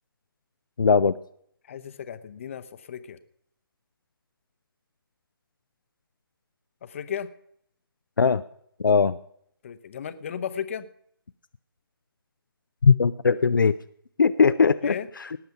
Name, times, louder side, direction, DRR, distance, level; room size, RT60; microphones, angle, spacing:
voice 1, 0.8-1.1 8.2-8.4 8.8-9.2 12.8-13.7 14.2-15.4, left 5 dB, 60° left, 11 dB, 0.5 m, -20 dB
voice 2, 1.7-3.2 6.8-7.3 9.6-10.9 14.8-15.1, left 8 dB, 35° left, 12 dB, 0.8 m, -35 dB
18.5 x 9.1 x 5.7 m, 0.68 s
figure-of-eight pair, 140°, 12 cm